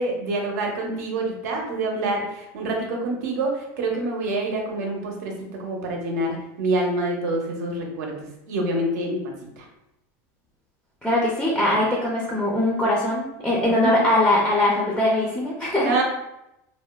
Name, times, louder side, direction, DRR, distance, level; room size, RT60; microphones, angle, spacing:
voice 1, 0.0-8.2 8.5-9.7 13.6-13.7 15.8-16.0, right 2 dB, 80° right, 1 dB, 0.7 m, -26 dB
voice 2, 11.0-16.0, left 1 dB, 5° left, -4 dB, 0.4 m, -21 dB
3.1 x 2.1 x 2.2 m, 0.85 s
supercardioid pair, 145°, 9 cm